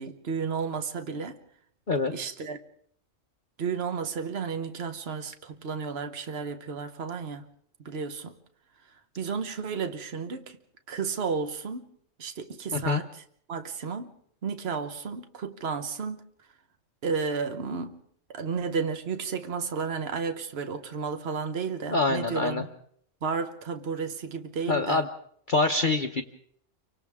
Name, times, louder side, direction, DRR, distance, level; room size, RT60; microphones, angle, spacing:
voice 1, 0.0-1.4 2.1-2.6 3.6-7.5 7.8-8.4 9.2-10.6 10.9-11.9 12.2-13.2 13.5-14.1 14.4-16.2 17.0-18.0 18.3-22.7 23.2-25.0, right 5 dB, 45° right, 1.4 m, -32 dB
voice 2, 1.9-2.3 12.7-13.0 21.9-22.6 24.7-25.1 25.5-26.2, left 3 dB, 40° left, 1.0 m, -25 dB
29.5 x 25.0 x 3.6 m
omnidirectional pair, 1.5 m